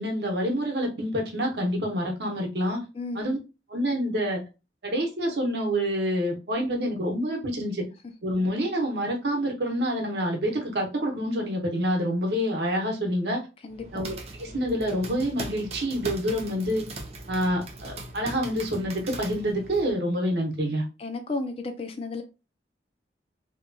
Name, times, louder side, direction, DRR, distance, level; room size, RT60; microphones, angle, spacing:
voice 1, 0.0-2.8 3.1-3.4 3.7-4.4 4.8-7.9 8.2-13.4 13.9-16.8 17.3-20.8, equal, 65° right, 0.8 m, -27 dB
sound 1, 13.7-19.9, right 2 dB, 35° right, 0.5 m, -40 dB
voice 2, 21.0-22.2, left 3 dB, 35° left, 0.4 m, -33 dB
2.8 x 2.3 x 2.6 m
head